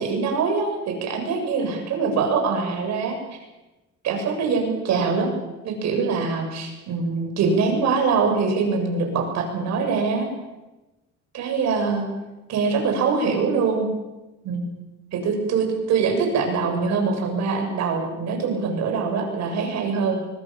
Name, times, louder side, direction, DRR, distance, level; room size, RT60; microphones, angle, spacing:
voice 1, 0.0-3.2 4.0-5.3 5.6-10.3 11.3-12.1 12.5-13.9 14.4-14.7 15.1-20.3, right 5 dB, 65° right, 3 dB, 7.4 m, -23 dB
25.0 x 22.5 x 7.5 m, 1.0 s
cardioid pair, 145°, 30 cm